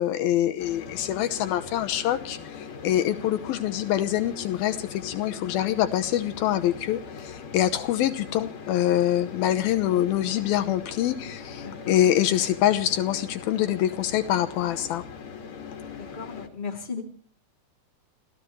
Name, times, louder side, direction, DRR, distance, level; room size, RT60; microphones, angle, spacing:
voice 1, 0.0-15.0, left 12 dB, 75° left, 10 dB, 2.7 m, -25 dB
sound 1, 0.6-16.5, left 6 dB, 50° left, 3.1 m, -41 dB
voice 2, 11.6-11.9 16.0-17.0, left 5 dB, 15° left, 2 dB, 2.4 m, -36 dB
30.0 x 15.5 x 3.1 m, 0.43 s
omnidirectional pair, 4.4 m